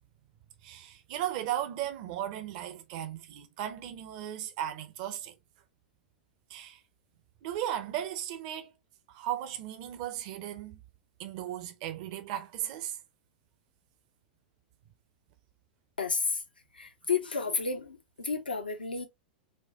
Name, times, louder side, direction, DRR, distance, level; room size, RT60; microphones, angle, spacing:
voice 1, 0.6-5.4 6.5-6.8 7.4-8.7 9.1-10.8 11.2-13.0, right 11 dB, 50° right, 0.6 m, -36 dB
voice 2, 16.0-16.4 16.7-19.1, left 4 dB, 80° left, 0.7 m, -31 dB
4.3 x 2.2 x 2.7 m
figure-of-eight pair, 95°, 5 cm